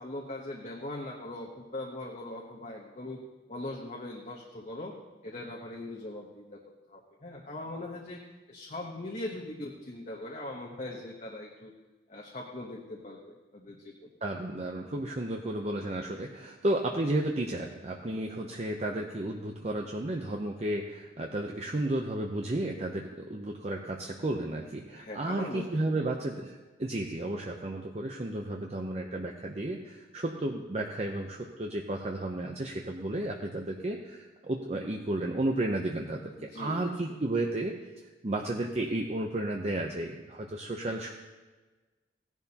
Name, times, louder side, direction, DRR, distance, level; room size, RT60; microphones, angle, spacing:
voice 1, 0.0-3.2 3.5-5.0 5.2-6.6 6.9-8.2 8.5-11.7 12.1-14.1 24.9-26.0 36.4-36.9, left 1 dB, 40° left, -2 dB, 1.0 m, -40 dB
voice 2, 14.2-37.7 38.2-41.1, right 1 dB, 35° right, 2 dB, 0.7 m, -33 dB
16.5 x 11.0 x 2.9 m, 1.3 s
head